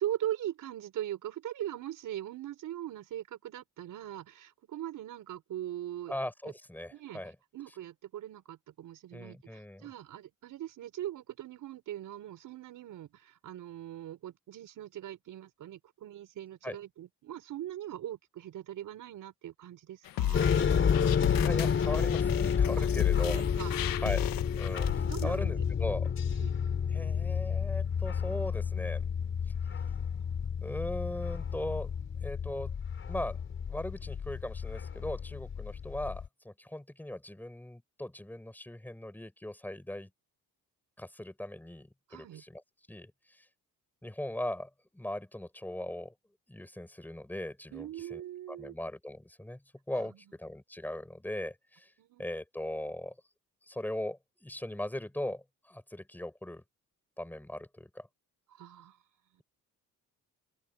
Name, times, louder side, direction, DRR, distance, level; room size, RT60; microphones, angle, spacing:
voice 1, 0.0-6.1 6.4-6.5 6.9-7.2 7.5-20.5 22.8-22.9 23.2-23.8 25.0-25.6 26.3-26.6 42.1-42.4 47.7-48.7 50.0-50.1 52.0-52.2 58.5-59.0 59.3-59.4, right 12 dB, 65° right, 5.1 m, -40 dB
voice 2, 6.1-7.3 9.1-9.9 16.6-16.8 21.0-23.4 24.0-24.2 24.6-26.1 26.9-29.0 30.6-31.9 32.2-32.7 33.1-33.4 33.7-40.1 41.0-42.6 42.9-43.4 44.0-46.1 46.5-48.2 48.5-49.6 49.9-51.9 52.2-53.1 53.7-56.6 57.2-58.1, left 1 dB, 5° left, 6.8 m, -39 dB
sound 1, 20.1-25.2, left 13 dB, 85° left, 1.5 m, -35 dB
sound 2, 20.3-36.3, left 7 dB, 35° left, 5.8 m, -30 dB
cardioid pair, 160°, 34 cm